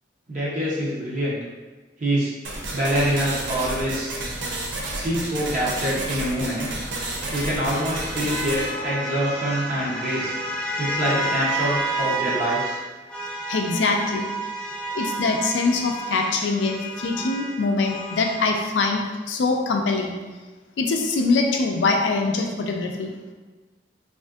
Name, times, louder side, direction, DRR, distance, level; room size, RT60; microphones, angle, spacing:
voice 1, 0.3-1.4 2.0-2.3 2.7-4.2 4.9-6.7 7.3-10.3 10.8-12.8, equal, 45° right, -6 dB, 0.6 m, -25 dB
sound 1, 2.4-8.7, right 2 dB, 85° right, 0.5 m, -31 dB
sound 2, 6.2-12.8 13.1-18.5, right 2 dB, 5° left, 0.6 m, -30 dB
voice 2, 13.5-14.3 14.9-20.1 20.8-23.1, left 3 dB, 75° left, 2 dB, 0.4 m, -23 dB
3.5 x 2.5 x 2.3 m, 1.3 s
head